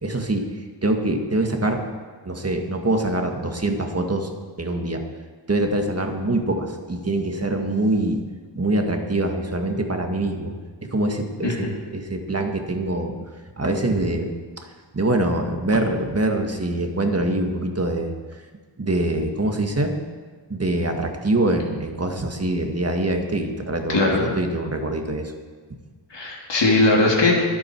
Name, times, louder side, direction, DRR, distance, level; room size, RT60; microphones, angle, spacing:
voice 1, 0.0-1.8 2.3-4.3 4.6-5.0 5.5-8.2 8.5-10.5 10.8-13.2 13.6-14.3 14.6-14.7 14.9-18.4 18.8-19.9 20.5-25.3, right 2 dB, 35° right, 4 dB, 1.8 m, -24 dB
voice 2, 23.9-24.3 26.1-27.3, left 2 dB, 70° left, -2 dB, 2.9 m, -19 dB
23.5 x 8.9 x 4.6 m, 1.4 s
wide cardioid pair, 85°, 44 cm